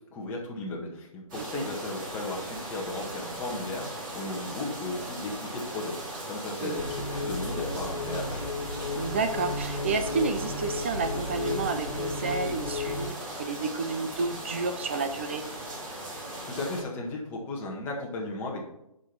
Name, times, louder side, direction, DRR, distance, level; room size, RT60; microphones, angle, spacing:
voice 1, 0.1-8.4 16.1-18.6, left 2 dB, 10° left, -2 dB, 1.6 m, -35 dB
sound 1, 1.3-16.8, right 1 dB, 35° right, 3.8 m, -38 dB
voice 2, 1.4-1.7 6.6-6.8 9.0-15.4, right 4 dB, 20° right, 7 dB, 0.4 m, -31 dB
sound 2, 6.8-13.1, left 2 dB, 70° left, 1.5 m, -33 dB
9.9 x 5.4 x 4.5 m, 0.84 s
figure-of-eight pair, 150°, 19 cm